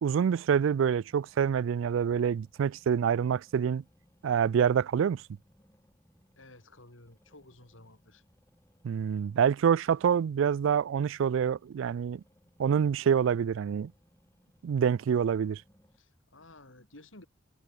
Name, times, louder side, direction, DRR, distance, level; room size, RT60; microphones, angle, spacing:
voice 1, 0.0-3.8 4.2-5.2 8.8-12.2 12.6-13.9 14.6-15.6, right 7 dB, 80° right, 0.3 m, -26 dB
sound 1, 0.8-16.0, equal, 15° left, 7.2 m, -67 dB
voice 2, 6.4-8.2 16.0-17.3, left 2 dB, 85° left, 4.8 m, -54 dB
head